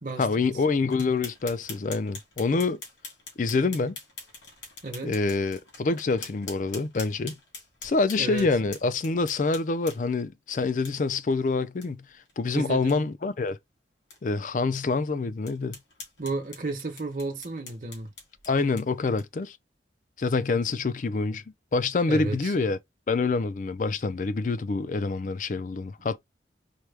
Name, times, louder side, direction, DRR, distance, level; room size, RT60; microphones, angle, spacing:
voice 1, 0.2-2.8 3.4-4.0 5.0-7.4 7.8-12.1 12.4-13.6 14.2-15.8 18.5-19.6 20.2-21.4 21.7-22.8 23.1-26.2, left 3 dB, 45° left, 0.4 m, -26 dB
sound 1, 0.9-10.2 10.8-10.9 11.3-11.4 11.8-11.9 12.3-12.4 12.7-13.0 13.5-13.6 14.1-14.2 14.7-14.8 15.4-19.5, left 4 dB, 85° left, 2.2 m, -44 dB
voice 2, 8.2-8.5 12.5-13.0 16.2-18.1 22.1-22.5, right 3 dB, 45° right, 1.0 m, -32 dB
4.6 x 2.2 x 3.3 m
head